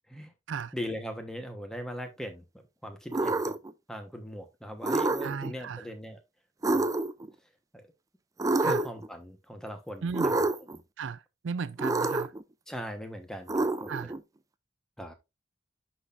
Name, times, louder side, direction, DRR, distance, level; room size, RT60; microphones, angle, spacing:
voice 1, 0.7-2.4 2.8-3.5 3.9-6.2 6.7-6.9 7.7-7.8 8.6-10.8 12.7-14.2 15.0-15.1, equal, 5° left, 1.0 m, -40 dB
sound 1, 3.1-3.7 4.8-5.5 6.6-7.3 8.4-9.1 10.1-10.8 11.8-12.4 13.5-14.2, right 2 dB, 20° right, 0.4 m, -28 dB
voice 2, 5.2-5.8 8.6-8.8 10.0-10.3 11.0-12.3 13.9-14.1, right 5 dB, 85° right, 0.4 m, -35 dB
11.0 x 4.3 x 2.5 m
head